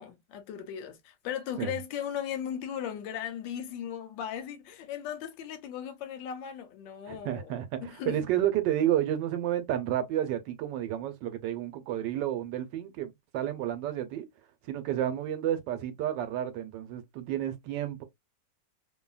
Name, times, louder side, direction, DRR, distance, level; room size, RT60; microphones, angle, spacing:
voice 1, 0.0-7.5 7.8-8.3, left 9 dB, 85° left, 1.3 m, -37 dB
voice 2, 7.1-14.3 14.6-18.0, right 11 dB, 85° right, 1.3 m, -31 dB
2.7 x 2.7 x 2.3 m
omnidirectional pair, 2.0 m